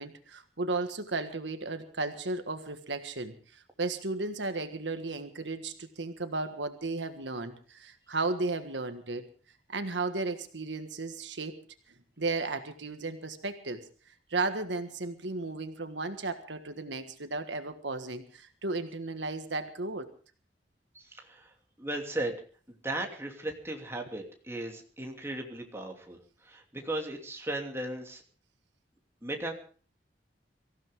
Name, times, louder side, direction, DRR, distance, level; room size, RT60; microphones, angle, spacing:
voice 1, 0.0-9.2 9.7-11.6 12.2-13.8 14.3-20.1, right 3 dB, 75° right, 8 dB, 1.6 m, -34 dB
voice 2, 20.9-21.5 21.8-22.4 22.7-26.2 26.4-28.2 29.2-29.5, right 1 dB, 15° right, 2 dB, 2.9 m, -36 dB
24.5 x 15.5 x 3.6 m, 0.41 s
head